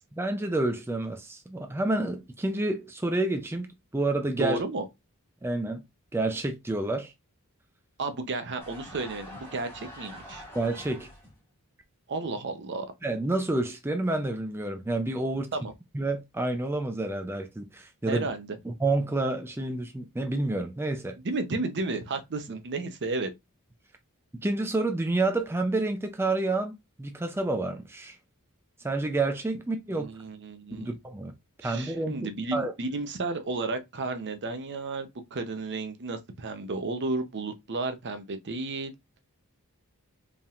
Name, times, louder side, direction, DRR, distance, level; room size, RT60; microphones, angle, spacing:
voice 1, 0.1-3.7 3.9-4.6 5.4-5.8 6.1-7.1 10.5-11.1 13.0-15.5 15.9-18.3 18.6-21.2 24.4-28.2 28.8-30.1 30.7-31.3 31.6-32.2 32.5-32.7, right 2 dB, 10° right, 0.4 m, -29 dB
voice 2, 4.4-4.8 8.0-10.4 12.1-12.9 15.5-15.7 18.1-18.6 21.2-23.3 29.9-30.9 31.6-38.9, right 3 dB, 50° right, 0.7 m, -32 dB
sound 1, 8.6-11.4, equal, 10° left, 1.9 m, -45 dB
5.0 x 3.5 x 2.4 m
head